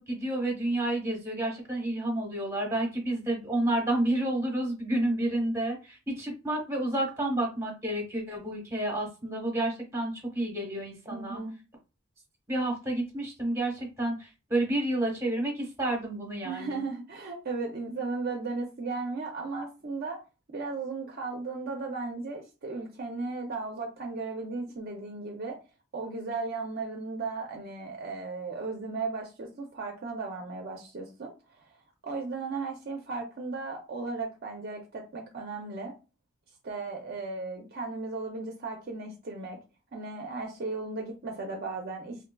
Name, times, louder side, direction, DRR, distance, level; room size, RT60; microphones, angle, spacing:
voice 1, 0.1-11.4 12.5-16.8, right 1 dB, 10° right, 0 dB, 1.0 m, -30 dB
voice 2, 11.1-11.5 16.4-20.2 20.5-25.6 25.9-31.6 32.0-35.9 36.6-39.6 39.9-42.2, right 3 dB, 45° right, 1 dB, 0.4 m, -36 dB
3.5 x 2.5 x 2.2 m, 0.31 s
head